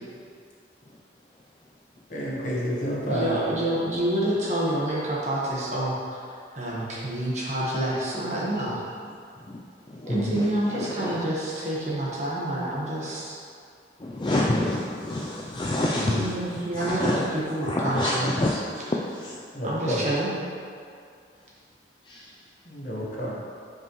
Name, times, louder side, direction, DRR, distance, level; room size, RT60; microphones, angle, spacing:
voice 1, 2.1-3.4 10.1-10.3 15.9-16.2 19.5-20.0 22.7-23.3, equal, 40° left, -5 dB, 1.2 m, -29 dB
voice 2, 3.0-6.2 6.5-8.8 10.1-13.4 16.1-18.3 18.7-19.0 19.6-20.3, right 1 dB, 35° right, -6 dB, 1.3 m, -28 dB
voice 3, 10.0-11.1 14.0-16.2 16.8-17.2 17.7-18.6 19.2-19.3 22.1-22.2, left 1 dB, 25° left, -3 dB, 0.3 m, -27 dB
7.7 x 5.2 x 3.1 m, 2.3 s
head